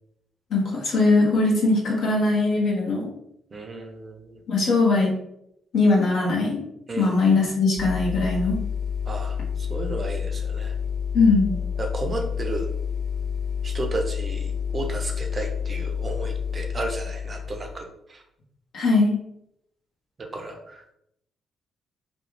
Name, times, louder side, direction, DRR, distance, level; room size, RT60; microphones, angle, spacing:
voice 1, 0.5-3.0 4.5-5.1 5.7-6.6 7.0-8.6 11.1-11.6 18.7-19.1, left 3 dB, 65° left, -5 dB, 1.1 m, -20 dB
voice 2, 3.5-4.4 6.9-7.1 9.1-10.7 11.8-12.7 13.6-18.2 20.2-20.8, right 2 dB, 40° right, 3 dB, 0.7 m, -33 dB
sound 1, 7.8-17.8, left 7 dB, 35° left, 1.1 m, -29 dB
3.1 x 2.3 x 3.1 m, 0.76 s
hypercardioid pair, 45°, 0 cm